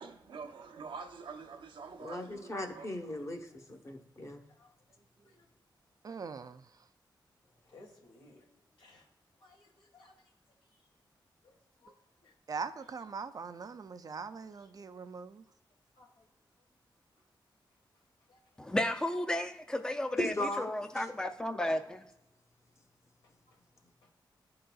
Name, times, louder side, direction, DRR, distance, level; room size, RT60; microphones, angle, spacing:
voice 1, 0.0-2.9, right 5 dB, 85° right, 0.7 m, -46 dB
voice 2, 2.0-4.4 20.2-21.1, left 1 dB, 35° left, 1.0 m, -37 dB
voice 3, 6.0-6.7 12.5-15.4, right 5 dB, 50° right, 0.4 m, -41 dB
voice 4, 7.7-8.5 8.8-9.1 9.4-10.2 10.7-10.8 11.4-12.0 12.2-12.3 12.8-12.9 16.0-16.3 18.3-18.4 23.5-23.6 24.0-24.1, left 2 dB, 85° left, 1.6 m, -60 dB
voice 5, 18.6-22.0, left 1 dB, 10° left, 0.5 m, -33 dB
11.0 x 3.8 x 2.3 m
cardioid pair, 80°, 8 cm